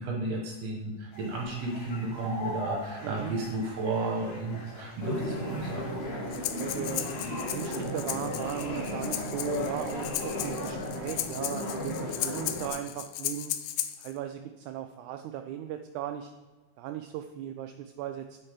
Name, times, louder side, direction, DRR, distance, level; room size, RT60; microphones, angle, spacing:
voice 1, 0.0-5.8, right 2 dB, 60° right, -1 dB, 2.0 m, -33 dB
sound 1, 1.1-11.0, left 1 dB, 60° left, 3.4 m, -43 dB
voice 2, 3.0-3.3 6.5-13.5 14.0-16.3 16.8-18.4, right 11 dB, 80° right, 7 dB, 1.8 m, -37 dB
sound 2, 5.0-12.7, left 1 dB, 30° left, 1.1 m, -35 dB
Breathing, 6.3-14.1, left 12 dB, 85° left, 1.6 m, -36 dB
8.8 x 7.1 x 5.0 m, 1.3 s
omnidirectional pair, 3.8 m